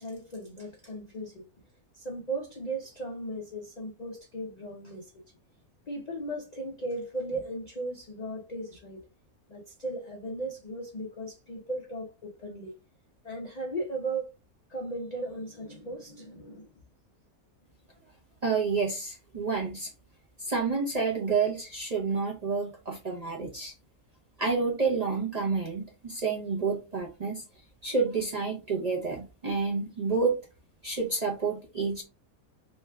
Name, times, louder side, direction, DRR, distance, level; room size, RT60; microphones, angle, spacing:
voice 1, 0.0-1.5 1.9-5.1 5.9-9.0 9.5-12.7 13.2-14.3 14.7-16.7, right 2 dB, 65° left, 0.4 m, -36 dB
voice 2, 18.4-19.9 20.4-23.7 24.4-27.4 27.8-30.4 30.8-32.0, right 4 dB, 40° right, 0.6 m, -29 dB
3.1 x 2.3 x 3.2 m
omnidirectional pair, 1.5 m